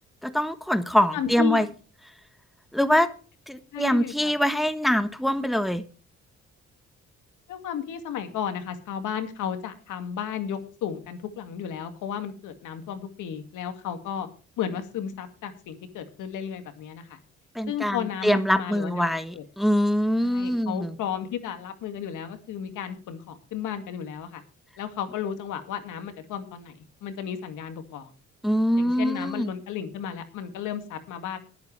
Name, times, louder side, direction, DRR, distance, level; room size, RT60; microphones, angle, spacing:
voice 1, 0.2-1.7 2.7-3.1 3.5-5.8 17.5-21.0 28.4-29.5, equal, ahead, 10 dB, 1.2 m, -24 dB
voice 2, 1.1-1.7 3.7-4.3 7.5-14.3 14.6-17.2 17.7-19.4 20.2-24.4 24.8-28.1 28.8-31.4, left 9 dB, 85° left, 8 dB, 2.3 m, -33 dB
20.0 x 8.4 x 3.3 m, 0.37 s
cardioid pair, 90°, 30 cm